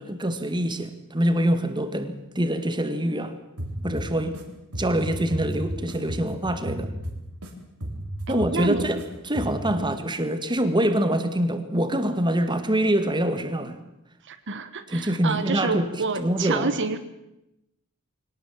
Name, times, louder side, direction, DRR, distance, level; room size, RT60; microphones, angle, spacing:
voice 1, 0.0-3.3 3.8-4.4 4.8-6.9 8.3-13.8 14.9-15.9 16.2-16.7, right 1 dB, 20° right, 9 dB, 1.8 m, -25 dB
sound 1, 3.6-4.4 4.7-7.5 7.8-9.0 9.4-9.7, right 1 dB, 80° right, 4.4 m, -33 dB
voice 2, 8.3-8.9 9.8-9.9 14.2-17.0, right 4 dB, 55° right, 10 dB, 1.3 m, -29 dB
23.0 x 18.0 x 7.5 m, 0.87 s
head